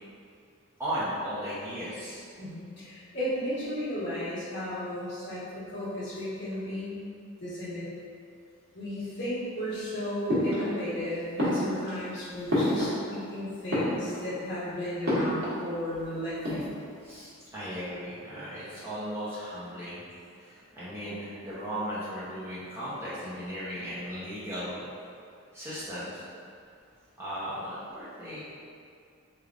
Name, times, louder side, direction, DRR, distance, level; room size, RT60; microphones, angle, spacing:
voice 1, 0.8-2.3 8.9-9.1 11.5-11.6 17.0-20.0 20.3-24.8 25.5-26.2 27.2-28.4, equal, 10° right, -11 dB, 0.7 m, -36 dB
voice 2, 2.4-7.0 7.4-7.9 8.7-16.7 18.3-18.4, left 1 dB, 50° left, -11 dB, 1.5 m, -34 dB
sound 1, 10.3-11.0 11.4-13.3 13.6-14.4 15.0-15.7 15.9-16.0 16.3-17.0, left 1 dB, 60° right, 1.3 m, -29 dB
4.5 x 3.4 x 2.4 m, 2.3 s
head